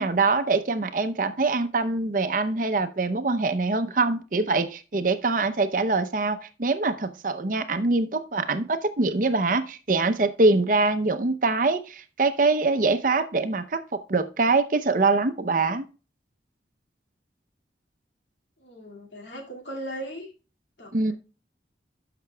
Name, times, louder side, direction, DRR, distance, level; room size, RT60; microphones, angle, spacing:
voice 1, 0.0-15.8 20.9-21.1, right 3 dB, 45° right, 10 dB, 0.6 m, -24 dB
voice 2, 18.6-20.3 20.8-21.1, right 1 dB, 80° left, 0 dB, 2.2 m, -38 dB
12.5 x 5.9 x 2.2 m, 0.33 s
head